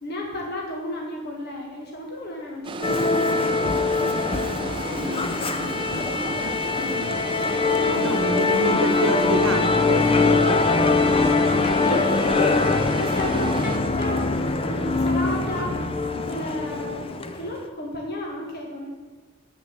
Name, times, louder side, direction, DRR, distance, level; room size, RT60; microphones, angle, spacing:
voice 1, 0.0-6.4 6.7-7.2 7.5-8.0 11.8-12.7 13.0-14.2 14.6-15.7 16.2-18.9, left 1 dB, 50° left, -1 dB, 1.5 m, -34 dB
sound 1, 2.6-13.8, right 3 dB, 25° right, 0.4 m, -34 dB
Musical instrument, 2.8-17.5, left 3 dB, 25° left, 0.5 m, -23 dB
sound 2, 7.7-15.5, equal, ahead, 1.2 m, -42 dB
voice 2, 7.9-10.7 11.0-11.6 15.4-15.9, right 2 dB, 70° right, 8 dB, 1.1 m, -29 dB
8.9 x 6.9 x 6.7 m, 1.5 s
head